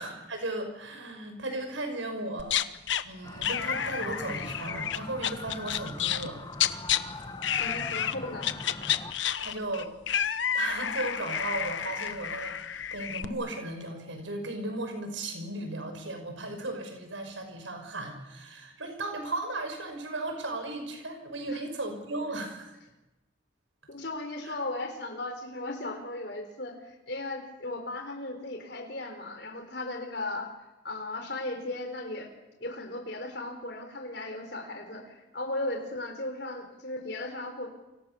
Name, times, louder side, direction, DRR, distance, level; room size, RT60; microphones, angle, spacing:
voice 1, 0.0-2.6 3.0-6.4 9.4-9.9 10.5-22.7 24.4-24.5, right 2 dB, 85° right, 6 dB, 6.1 m, -36 dB
sound 1, 2.4-3.0 3.4-6.3 6.5-7.0 7.4-8.1 8.4-13.3, left 9 dB, 75° left, 1.1 m, -30 dB
sound 2, 3.2-9.1, left 2 dB, 20° left, 1.7 m, -42 dB
voice 2, 7.6-8.5 21.5-21.6 23.9-30.5 30.8-32.3 32.6-37.7, left 2 dB, 60° left, 3 dB, 4.1 m, -36 dB
29.0 x 24.5 x 7.0 m, 1.0 s
head